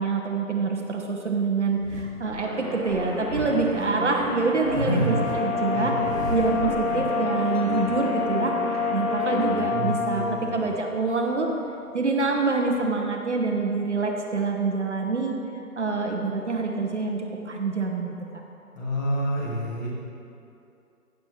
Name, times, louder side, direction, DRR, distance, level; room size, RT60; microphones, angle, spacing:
voice 1, 0.0-5.9 6.3-8.5 8.9-11.5 11.9-15.4 15.8-18.1, right 4 dB, 50° right, 1 dB, 1.0 m, -26 dB
sound 1, 1.8-2.4 2.9-5.4 5.7-7.2 7.5-8.8 9.1-9.4 11.1-12.4 12.7-12.8, equal, 85° left, 2.1 m, -38 dB
sound 2, 2.3-9.7, equal, 20° right, 0.6 m, -34 dB
Brass instrument, 4.6-10.5, left 5 dB, 60° left, 1.6 m, -28 dB
voice 2, 4.7-5.1 5.7-6.2 6.8-7.0 9.7-10.5 18.7-19.9, right 1 dB, 30° left, -5 dB, 1.9 m, -28 dB
15.0 x 7.3 x 3.3 m, 2.6 s
figure-of-eight pair, 150°, 46 cm